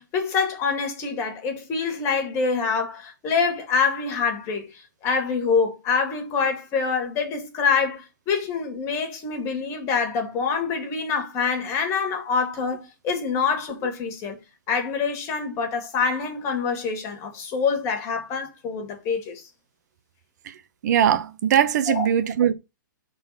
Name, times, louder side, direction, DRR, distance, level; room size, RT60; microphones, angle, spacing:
voice 1, 0.0-14.4 14.7-19.4 21.9-22.1, left 5 dB, 30° left, 2.2 m, -25 dB
voice 2, 20.8-22.5, right 9 dB, 60° right, 1.0 m, -20 dB
6.1 x 4.1 x 5.7 m
hypercardioid pair, 140°, 11 cm